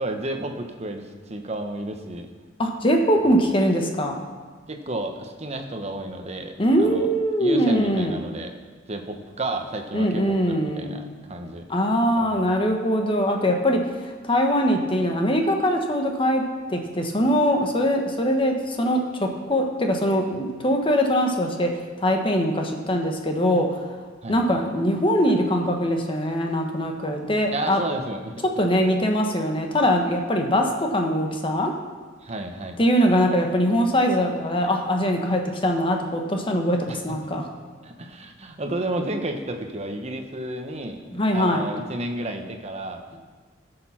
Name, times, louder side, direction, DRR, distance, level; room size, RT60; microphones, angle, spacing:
voice 1, 0.0-2.3 4.7-7.1 7.4-8.5 8.9-11.7 12.2-12.5 24.2-24.5 27.5-28.4 32.2-32.8 36.9-37.2 37.8-43.0, right 1 dB, 35° right, 5 dB, 1.0 m, -32 dB
voice 2, 2.6-4.2 6.6-8.2 9.9-10.9 11.7-16.4 16.7-21.7 22.0-23.7 24.3-27.8 28.6-31.7 32.8-37.5 41.1-41.7, equal, 30° left, 3 dB, 1.2 m, -22 dB
13.0 x 6.8 x 5.8 m, 1.4 s
head